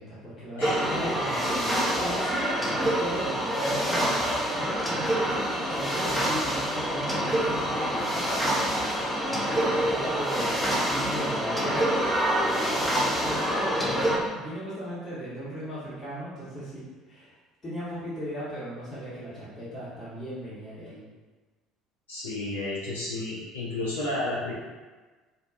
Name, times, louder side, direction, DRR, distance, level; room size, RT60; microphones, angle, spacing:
voice 1, 0.0-1.7 2.0-5.1 5.6-8.4 9.3-10.5 10.8-11.9 12.3-12.9 13.2-17.4 17.6-21.0, equal, 30° left, -11 dB, 1.0 m, -37 dB
voice 2, 0.6-1.4 22.1-24.5, left 2 dB, 75° left, -7 dB, 0.4 m, -32 dB
sound 1, 0.6-14.2, equal, 10° left, 0.5 m, -26 dB
2.5 x 2.2 x 2.4 m, 1.3 s
figure-of-eight pair, 60°, 0 cm